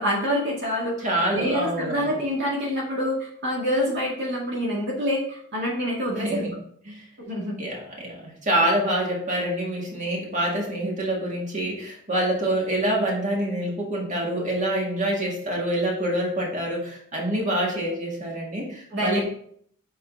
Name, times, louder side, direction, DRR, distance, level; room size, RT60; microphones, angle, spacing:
voice 1, 0.0-1.1 1.3-6.4 7.2-7.6 18.9-19.2, equal, 55° right, -3 dB, 1.7 m, -26 dB
voice 2, 1.0-2.2 6.1-6.6 6.9-7.0 7.6-19.2, right 1 dB, 35° right, -2 dB, 1.8 m, -26 dB
5.9 x 4.2 x 5.1 m, 0.63 s
head